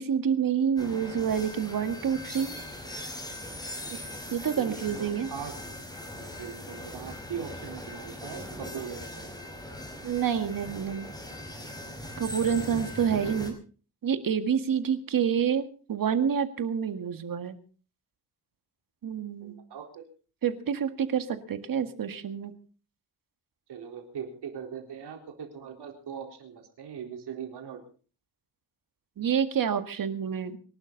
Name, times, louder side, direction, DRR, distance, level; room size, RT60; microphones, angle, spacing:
voice 1, 0.0-2.5 3.9-4.0 4.3-5.3 10.0-11.1 12.2-13.6 14.0-17.6 19.0-19.6 20.4-22.5 29.2-30.6, right 8 dB, 60° right, 9 dB, 1.9 m, -28 dB
sound 1, 0.8-13.5, left 1 dB, 10° left, 4.7 m, -40 dB
voice 2, 0.8-1.1 4.1-5.5 6.4-9.3 19.4-20.0 23.7-27.8, right 7 dB, 90° right, 3 dB, 4.2 m, -40 dB
26.0 x 12.0 x 4.0 m, 0.39 s
wide cardioid pair, 130°, 38 cm